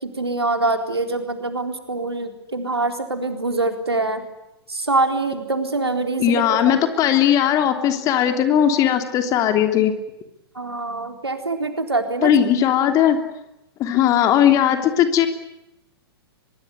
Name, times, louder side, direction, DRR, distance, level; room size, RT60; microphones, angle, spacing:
voice 1, 0.0-4.2 4.7-6.7 10.6-12.3, right 2 dB, 80° right, 6 dB, 4.1 m, -24 dB
voice 2, 6.2-9.9 12.2-13.2 13.8-15.3, left 10 dB, 25° left, 7 dB, 3.2 m, -18 dB
23.5 x 22.5 x 9.5 m, 0.89 s
figure-of-eight pair, 110°, 13 cm